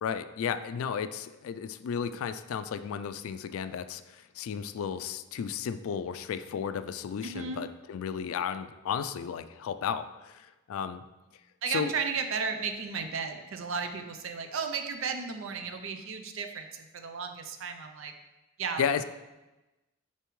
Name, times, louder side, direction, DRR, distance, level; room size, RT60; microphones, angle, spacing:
voice 1, 0.0-11.0 11.7-11.9 18.8-19.0, left 7 dB, 90° left, 11 dB, 0.3 m, -33 dB
voice 2, 7.2-7.6 11.6-18.1 18.6-19.0, right 5 dB, 70° right, 6 dB, 0.5 m, -34 dB
6.8 x 4.5 x 3.1 m, 1.0 s
head